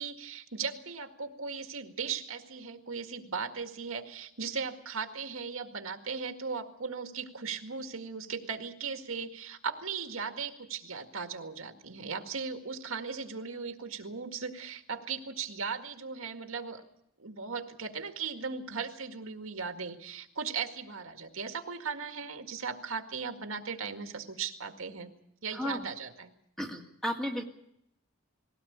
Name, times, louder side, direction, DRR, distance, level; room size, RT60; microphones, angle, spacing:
voice 1, 0.0-16.8 17.2-25.1 25.4-26.3, right 5 dB, 75° right, 6 dB, 2.0 m, -37 dB
voice 2, 25.5-25.9 26.6-27.4, equal, ahead, 2 dB, 1.9 m, -34 dB
21.0 x 17.5 x 8.7 m, 0.76 s
head